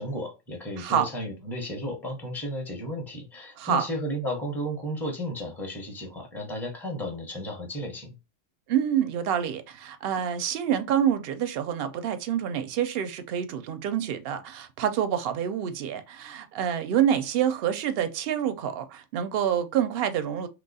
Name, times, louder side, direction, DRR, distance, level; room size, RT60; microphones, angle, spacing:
voice 1, 0.0-8.1, equal, ahead, 0.7 m, -33 dB
voice 2, 0.8-1.1 3.6-3.8 8.7-20.5, right 9 dB, 60° right, 0.7 m, -27 dB
2.9 x 2.3 x 4.0 m
omnidirectional pair, 1.3 m